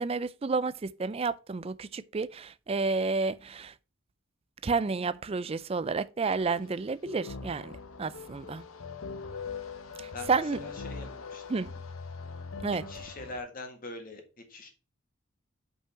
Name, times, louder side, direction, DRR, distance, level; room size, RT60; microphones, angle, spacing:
voice 1, 0.0-3.7 4.6-7.7 8.0-8.6 10.0-10.6 11.5-11.7 12.6-12.8, right 4 dB, 30° right, 0.3 m, -30 dB
sound 1, 6.4-13.4, left 4 dB, 80° left, 0.9 m, -42 dB
voice 2, 10.1-11.4 12.7-14.7, left 2 dB, 40° left, 1.8 m, -43 dB
5.6 x 5.5 x 5.7 m
head